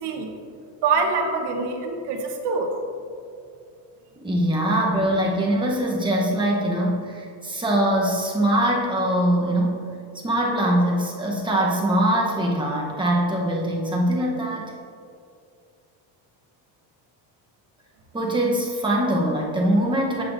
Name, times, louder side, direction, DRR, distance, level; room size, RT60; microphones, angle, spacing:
voice 1, 0.0-0.4 0.8-2.7, right 4 dB, 60° right, 3 dB, 1.1 m, -24 dB
voice 2, 4.2-9.8 10.2-14.7 18.1-20.2, right 1 dB, 10° right, -3 dB, 0.9 m, -22 dB
10.0 x 6.6 x 2.6 m, 2.3 s
cardioid pair, 155°, 47 cm